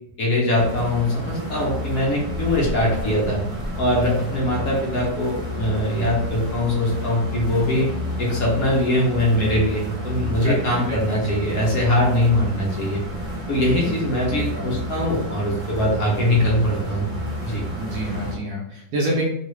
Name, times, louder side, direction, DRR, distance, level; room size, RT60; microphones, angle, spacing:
voice 1, 0.2-3.4 3.8-7.9 8.2-13.0 13.5-17.1 17.4-17.6, left 1 dB, 60° left, -4 dB, 1.1 m, -22 dB
sound 1, 0.6-18.3, left 1 dB, 40° right, 0.9 m, -30 dB
voice 2, 17.8-19.2, right 1 dB, 70° right, -2 dB, 0.9 m, -27 dB
3.1 x 2.4 x 3.0 m, 0.77 s
omnidirectional pair, 2.0 m